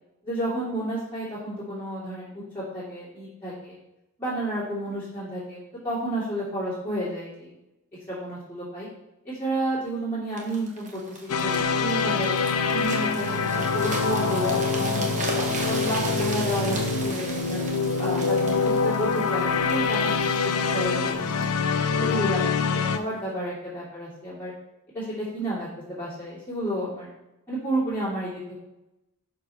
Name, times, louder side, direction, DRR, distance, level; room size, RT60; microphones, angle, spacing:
voice 1, 0.2-3.8 4.2-5.6 5.8-7.5 8.1-8.9 9.2-12.3 12.7-15.3 15.7-16.8 17.1-17.6 18.0-18.5 18.8-19.4 19.7-21.6 22.0-22.4 22.7-24.5 24.9-27.1 27.5-28.5, right 1 dB, 10° left, -11 dB, 2.6 m, -31 dB
sound 1, 10.4-22.2 22.8-23.0, right 2 dB, 35° right, 1.3 m, -37 dB
sound 2, 11.3-23.0, left 4 dB, 75° left, 0.5 m, -25 dB
5.9 x 4.9 x 5.7 m, 0.92 s
head